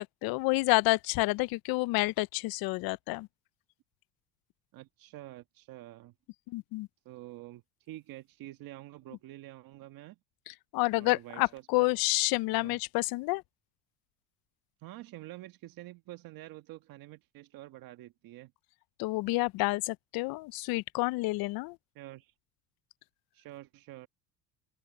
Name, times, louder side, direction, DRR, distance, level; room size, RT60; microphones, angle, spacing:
voice 1, 0.0-3.3 6.5-6.9 10.5-13.4 19.0-21.8, left 22 dB, 60° left, 0.5 m, -29 dB
voice 2, 4.7-6.1 7.0-10.2 10.9-11.9 12.5-12.8 14.8-18.5 21.9-22.3 23.3-24.1, right 16 dB, 55° right, 1.4 m, -47 dB
open air
cardioid pair, 135°, 41 cm